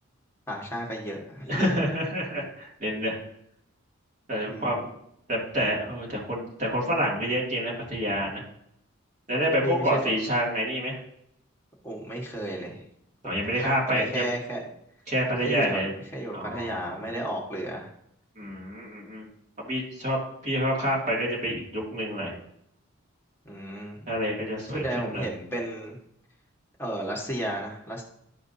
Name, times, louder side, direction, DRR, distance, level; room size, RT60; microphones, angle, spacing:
voice 1, 0.5-1.9 4.5-4.8 9.6-10.0 11.8-12.9 13.2-14.6 15.4-15.9 16.1-17.9 23.4-24.1 24.7-26.0 26.8-28.0, right 1 dB, 10° left, -2 dB, 1.5 m, -33 dB
voice 2, 1.5-3.2 4.3-4.9 5.3-8.4 9.3-11.0 13.2-14.3 15.1-15.9 16.3-16.9 18.4-19.3 19.6-22.3 24.1-25.3, equal, 35° right, -4 dB, 2.3 m, -28 dB
12.0 x 4.9 x 2.7 m, 0.74 s
head